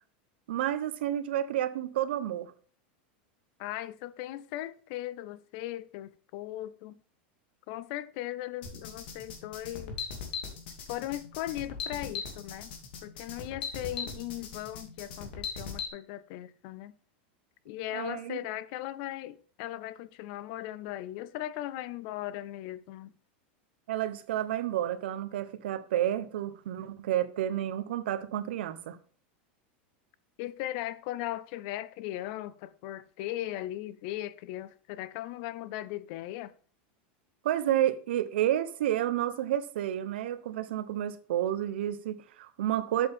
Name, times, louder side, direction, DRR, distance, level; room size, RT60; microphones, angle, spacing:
voice 1, 0.5-2.5 17.9-18.4 23.9-29.0 37.4-43.1, right 12 dB, 75° right, 0.9 m, -30 dB
voice 2, 3.6-7.0 7.7-10.0 10.9-12.7 13.0-17.0 17.7-23.1 30.4-36.5, left 14 dB, 40° left, 0.4 m, -38 dB
sound 1, 8.6-15.9, left 6 dB, 70° left, 2.4 m, -39 dB
7.9 x 7.7 x 3.5 m
supercardioid pair, 175°, 6 cm